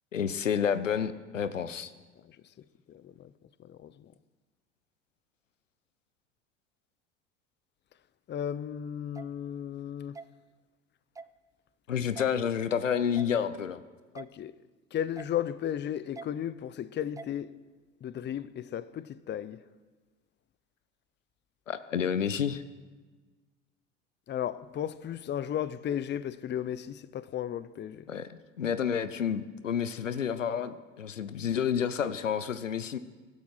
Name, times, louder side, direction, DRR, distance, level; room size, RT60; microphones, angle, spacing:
voice 1, 0.1-1.9 11.9-13.8 21.7-22.6 28.1-33.0, left 8 dB, 85° left, 0.8 m, -30 dB
voice 2, 2.9-3.3 3.6-4.1 8.3-10.2 14.1-14.5 14.9-17.5 18.0-19.6 24.3-28.1, left 10 dB, 30° left, 0.7 m, -35 dB
sound 1, 9.1-9.3 10.1-10.3 11.1-11.3 12.1-12.3 13.1-13.3 14.1-14.3 15.1-15.3 16.1-16.3 17.2-17.3, right 4 dB, 10° right, 0.4 m, -43 dB
24.5 x 12.0 x 4.8 m
figure-of-eight pair, 70°, 37 cm